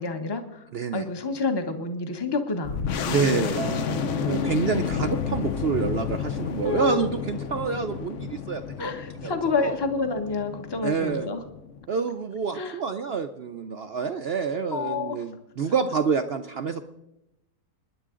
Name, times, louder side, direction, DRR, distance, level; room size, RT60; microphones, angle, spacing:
voice 1, 0.0-0.6 0.9-4.5 6.6-7.1 8.8-11.4 12.5-12.8 14.7-15.2, left 4 dB, 20° left, 7 dB, 1.0 m, -29 dB
voice 2, 0.7-1.0 3.1-3.6 4.2-8.6 9.2-9.8 10.8-11.3 11.9-16.8, right 6 dB, 60° right, 8 dB, 0.7 m, -27 dB
sound 1, 2.6-11.9, left 7 dB, 60° left, 0.9 m, -31 dB
Acoustic guitar, 3.6-8.8, right 6 dB, 85° right, 1.5 m, -41 dB
27.0 x 10.5 x 3.8 m, 0.91 s
omnidirectional pair, 1.6 m